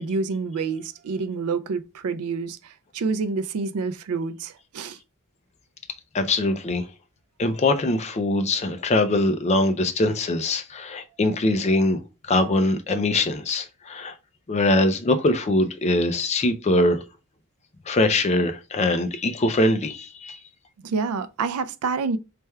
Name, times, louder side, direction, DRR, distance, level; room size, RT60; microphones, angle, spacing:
voice 1, 0.0-5.0 20.8-22.2, right 4 dB, 80° right, 0.4 m, -28 dB
voice 2, 6.1-6.9 7.4-12.0 12.3-14.2 14.5-17.0 17.9-20.4, left 2 dB, 30° left, 0.4 m, -22 dB
3.3 x 2.2 x 4.2 m
head